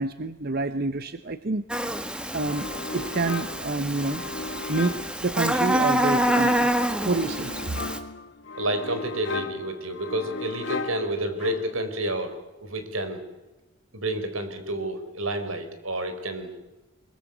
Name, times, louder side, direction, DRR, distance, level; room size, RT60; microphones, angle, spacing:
voice 1, 0.0-1.6 2.3-2.7 2.9-4.3 4.7-7.8, right 3 dB, 50° right, 11 dB, 0.9 m, -28 dB
Buzz, 1.7-8.0, right 1 dB, 5° right, 1.6 m, -27 dB
sound 1, 2.5-12.0, left 3 dB, 60° left, 2.0 m, -36 dB
voice 2, 8.6-13.2 13.9-16.5, right 1 dB, 85° right, 9 dB, 4.5 m, -30 dB
24.0 x 22.0 x 8.1 m, 1.1 s
head